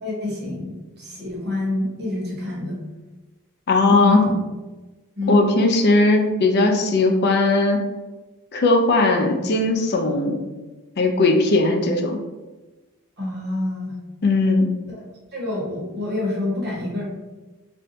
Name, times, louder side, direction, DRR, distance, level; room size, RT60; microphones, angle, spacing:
voice 1, 0.0-0.7 1.0-2.8 3.9-4.4 5.2-5.5 13.2-14.0 15.3-17.0, left 2 dB, 50° right, -4 dB, 1.1 m, -26 dB
voice 2, 3.7-4.3 5.3-7.8 8.5-10.4 11.0-12.2 14.2-14.7, left 2 dB, 45° left, 3 dB, 0.4 m, -18 dB
2.6 x 2.2 x 3.9 m, 1.2 s
head